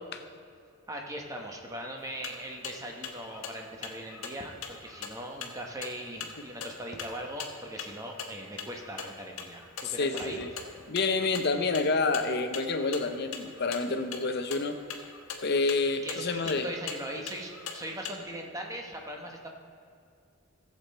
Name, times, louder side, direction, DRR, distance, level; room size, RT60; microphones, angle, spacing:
voice 1, 0.9-10.4 16.0-19.5, right 1 dB, 15° right, 1.0 m, -40 dB
sound 1, 2.0-18.1, left 6 dB, 85° left, 1.2 m, -43 dB
voice 2, 9.8-10.5 10.9-14.8 15.4-16.7, left 3 dB, 50° left, 0.7 m, -28 dB
15.0 x 7.6 x 4.2 m
head